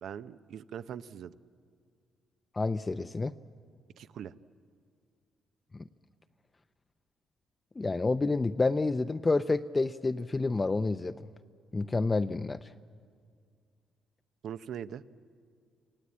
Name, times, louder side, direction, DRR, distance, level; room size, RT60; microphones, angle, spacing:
voice 1, 0.0-1.3 4.0-4.3 14.4-15.0, right 9 dB, 70° right, 13 dB, 0.7 m, -41 dB
voice 2, 2.5-3.3 5.7-5.8 7.8-11.2 11.7-12.7, left 3 dB, 25° left, 10 dB, 0.5 m, -29 dB
28.0 x 17.0 x 8.6 m, 2.1 s
cardioid pair, 90°, 0 cm